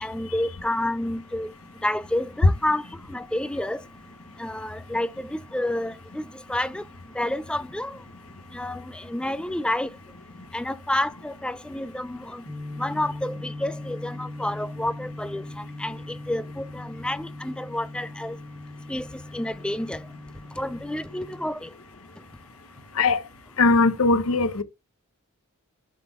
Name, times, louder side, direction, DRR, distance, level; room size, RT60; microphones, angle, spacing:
voice 1, 0.0-1.5 1.8-2.8 3.1-3.8 4.4-6.2 6.5-6.8 7.2-7.9 8.5-9.9 10.5-12.4 12.8-15.4 15.8-16.0 16.3-18.4 18.9-19.0 19.3-20.0 20.6-21.7, left 1 dB, 5° left, 0.3 m, -29 dB
sound 1, 12.5-21.5, left 2 dB, 20° right, 1.3 m, -39 dB
voice 2, 23.6-24.6, left 3 dB, 65° left, 0.8 m, -20 dB
7.5 x 3.9 x 5.8 m
head